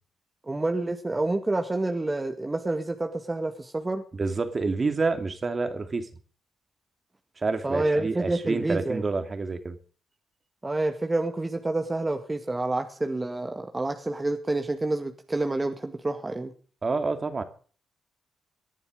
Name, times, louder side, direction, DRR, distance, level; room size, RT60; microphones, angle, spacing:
voice 1, 0.5-4.0 7.6-9.0 10.6-16.5, right 2 dB, 20° right, 1.9 m, -28 dB
voice 2, 4.1-6.1 7.4-9.7 16.8-17.4, right 3 dB, 35° right, 2.6 m, -28 dB
19.0 x 11.0 x 5.3 m
cardioid pair, 65°, 0 cm